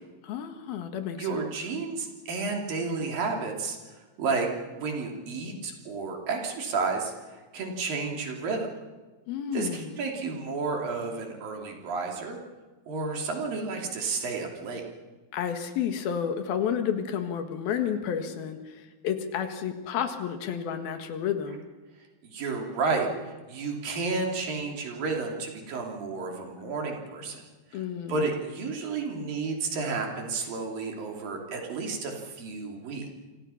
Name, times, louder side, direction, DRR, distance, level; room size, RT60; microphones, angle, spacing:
voice 1, 0.2-1.4 9.3-10.0 15.3-21.7 27.7-28.4, left 8 dB, 85° left, 7 dB, 3.5 m, -31 dB
voice 2, 1.2-3.8 4.2-7.1 7.5-8.7 9.5-12.4 12.9-14.8 22.2-27.4 27.7-27.8 28.1-33.1, right 4 dB, 75° right, 1 dB, 4.8 m, -31 dB
27.5 x 25.5 x 5.8 m, 1.3 s
omnidirectional pair, 4.1 m